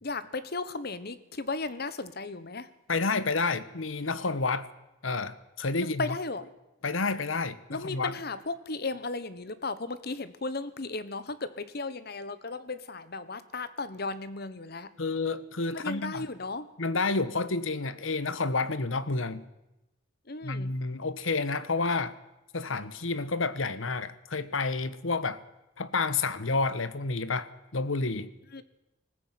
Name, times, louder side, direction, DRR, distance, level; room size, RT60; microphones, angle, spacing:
voice 1, 0.0-2.7 5.8-6.5 7.7-14.9 15.7-16.7 20.3-20.8 28.5-28.6, left 3 dB, 50° left, 1.2 m, -35 dB
voice 2, 2.9-4.7 5.0-6.2 6.8-8.1 15.0-16.2 16.8-19.4 20.4-22.1 22.5-25.4 25.8-28.3, left 3 dB, 80° left, 1.2 m, -30 dB
19.5 x 15.0 x 9.4 m
head